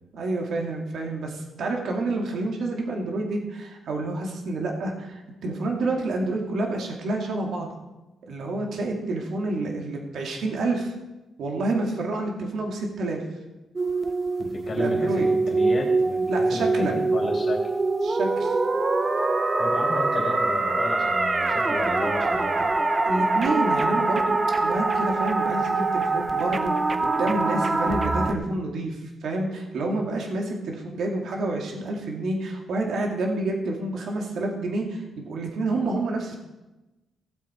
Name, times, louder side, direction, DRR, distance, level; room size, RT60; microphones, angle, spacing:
voice 1, 0.1-7.7 8.3-10.9 11.4-13.2 14.7-15.3 16.3-17.0 18.0-18.6 23.1-26.7 27.0-36.4, right 2 dB, 65° right, 1 dB, 2.3 m, -28 dB
sound 1, 13.8-28.3, right 3 dB, 25° right, 0.8 m, -24 dB
voice 2, 14.4-17.7 19.6-22.7, left 2 dB, 40° left, -1 dB, 3.3 m, -33 dB
17.0 x 7.9 x 4.5 m, 1.0 s
cardioid pair, 125°, 0 cm